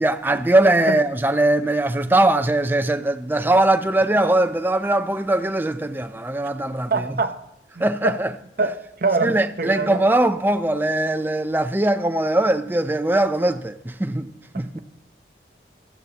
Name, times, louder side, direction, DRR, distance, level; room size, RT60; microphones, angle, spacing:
voice 1, 0.0-7.0 7.8-8.3 9.2-14.3 14.5-14.8, right 1 dB, 10° right, 0.5 m, -20 dB
voice 2, 6.9-7.4 7.7-8.2 8.6-10.0 14.5-14.8, right 4 dB, 50° right, 0.8 m, -24 dB
16.5 x 13.0 x 2.9 m
head